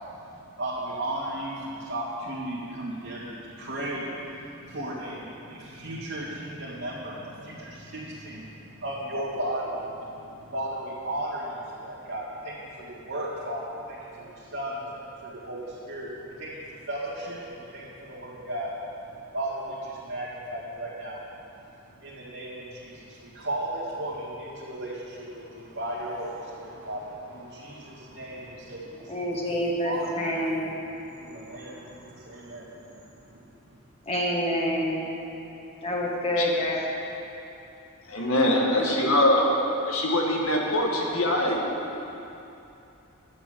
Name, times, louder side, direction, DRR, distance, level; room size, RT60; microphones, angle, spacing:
voice 1, 0.4-18.7 19.3-21.2 22.0-30.2 30.8-33.5, right 1 dB, 80° right, -10 dB, 2.1 m, -35 dB
voice 2, 29.1-30.7 34.1-35.1 35.8-36.8, equal, 30° left, -3 dB, 1.7 m, -27 dB
voice 3, 38.1-39.4 39.9-41.6, left 1 dB, 80° left, -1 dB, 1.8 m, -23 dB
10.5 x 7.3 x 7.8 m, 2.8 s
head